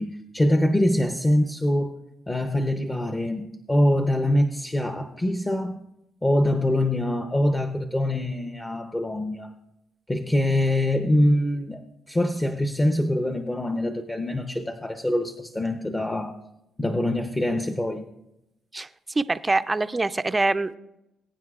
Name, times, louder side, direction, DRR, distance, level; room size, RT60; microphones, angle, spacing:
voice 1, 0.0-2.0 2.3-5.8 6.2-9.5 10.1-16.4 16.8-18.0, left 1 dB, 15° left, 5 dB, 0.7 m, -24 dB
voice 2, 18.7-20.8, right 3 dB, 20° right, 12 dB, 0.4 m, -25 dB
20.5 x 9.3 x 2.4 m, 0.88 s
cardioid pair, 90°, 0 cm